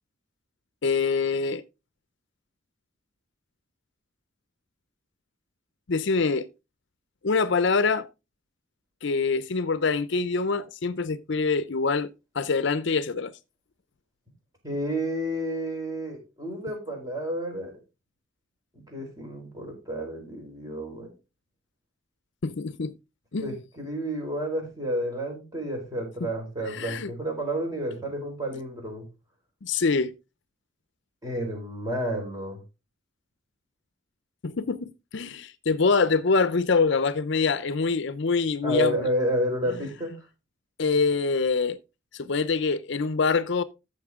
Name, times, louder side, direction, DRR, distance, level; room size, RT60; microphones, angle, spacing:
voice 1, 0.8-1.6 5.9-6.5 7.2-8.1 9.0-12.1 12.3-13.3 22.4-22.9 23.3-23.6 26.2-26.3 26.7-27.1 29.6-30.1 34.4-39.1 40.8-41.8 42.1-43.6, left 4 dB, 60° left, 0.6 m, -25 dB
voice 2, 14.6-17.7 18.7-21.1 23.4-29.0 31.2-32.6 38.6-40.2, equal, 15° right, 4.3 m, -30 dB
13.5 x 6.7 x 3.6 m
head